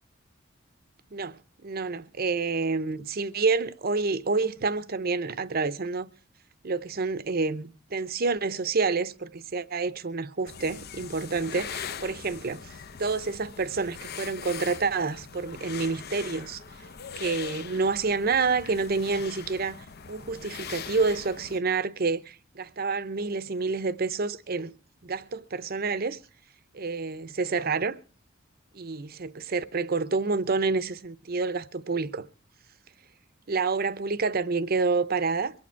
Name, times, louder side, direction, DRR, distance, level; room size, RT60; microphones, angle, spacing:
voice 1, 1.6-6.1 6.6-12.6 13.0-16.6 17.2-24.7 25.0-26.2 26.7-28.0 28.7-32.3 33.5-35.5, right 4 dB, 50° right, 0.7 m, -28 dB
sound 1, 10.5-21.6, left 7 dB, 50° left, 0.7 m, -41 dB
23.5 x 8.7 x 4.5 m
head